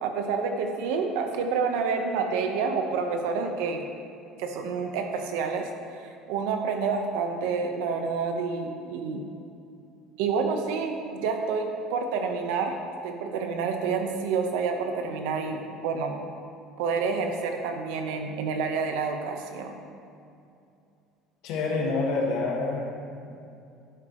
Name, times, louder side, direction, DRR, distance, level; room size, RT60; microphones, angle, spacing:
voice 1, 0.0-3.8 4.4-9.2 10.2-12.8 13.0-16.2 16.8-19.8, right 5 dB, 85° right, 4 dB, 1.2 m, -28 dB
voice 2, 21.4-22.9, left 3 dB, 60° left, -1 dB, 2.0 m, -27 dB
11.5 x 10.0 x 3.2 m, 2.5 s
cardioid pair, 175°, 0 cm